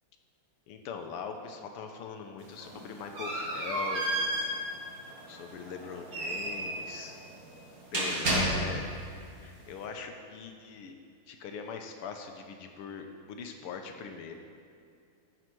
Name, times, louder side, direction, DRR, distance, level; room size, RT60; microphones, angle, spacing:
voice 1, 0.7-4.6 5.3-7.2 7.9-8.9 9.4-11.0 11.3-14.3, left 6 dB, 85° left, 5 dB, 1.7 m, -41 dB
sound 1, 2.4-9.0, right 1 dB, 40° right, 2.1 m, -32 dB
14.0 x 5.6 x 4.6 m, 2.4 s
omnidirectional pair, 2.4 m